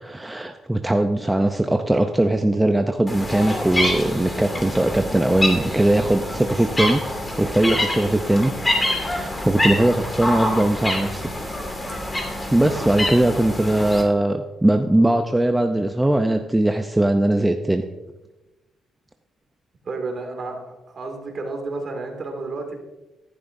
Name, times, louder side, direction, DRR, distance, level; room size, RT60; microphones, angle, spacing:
voice 1, 0.0-7.0 7.4-11.2 12.5-17.8, right 1 dB, 10° right, 5 dB, 0.6 m, -20 dB
sound 1, 3.1-14.0, left 1 dB, 20° left, 2.5 m, -26 dB
voice 2, 19.8-22.8, right 3 dB, 45° right, 2 dB, 2.3 m, -31 dB
13.0 x 11.5 x 2.7 m, 1.1 s
cardioid pair, 90°, 0 cm